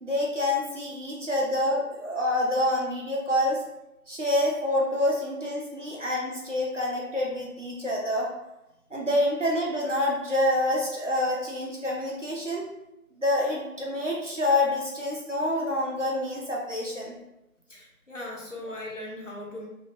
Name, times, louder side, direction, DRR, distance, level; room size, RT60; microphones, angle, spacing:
voice 1, 0.0-3.6 4.1-8.3 8.9-12.7 13.2-17.1, left 1 dB, 55° right, -3 dB, 0.7 m, -27 dB
voice 2, 17.7-19.7, left 1 dB, 55° left, -3 dB, 0.7 m, -38 dB
2.7 x 2.1 x 3.1 m, 0.90 s
figure-of-eight pair, 180°, 44 cm